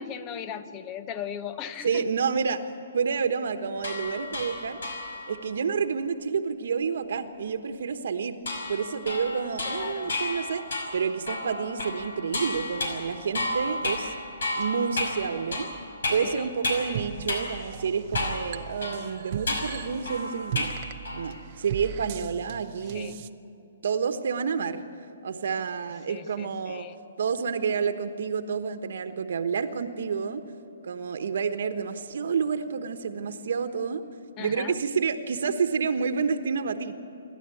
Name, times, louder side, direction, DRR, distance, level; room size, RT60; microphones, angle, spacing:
voice 1, 0.0-2.0 9.6-10.2 16.2-16.5 22.8-23.1 26.1-27.0 34.4-34.8, left 9 dB, 20° left, 12 dB, 0.8 m, -38 dB
voice 2, 1.8-2.6 2.9-4.8 5.3-8.4 8.7-10.6 10.9-14.1 14.6-15.7 16.1-20.7 21.1-23.1 23.8-24.8 25.2-26.9 27.2-30.4 30.8-34.0 34.4-36.9, right 6 dB, 65° right, 8 dB, 1.2 m, -29 dB
sound 1, 3.8-5.4 8.5-17.0 17.3-17.5 18.1-18.5 18.8-20.8 21.0-21.4, left 2 dB, 85° left, 5.5 m, -32 dB
sound 2, 16.9-23.3, right 10 dB, 35° right, 0.7 m, -38 dB
27.0 x 12.5 x 9.2 m, 2.8 s
hypercardioid pair, 165°, 0 cm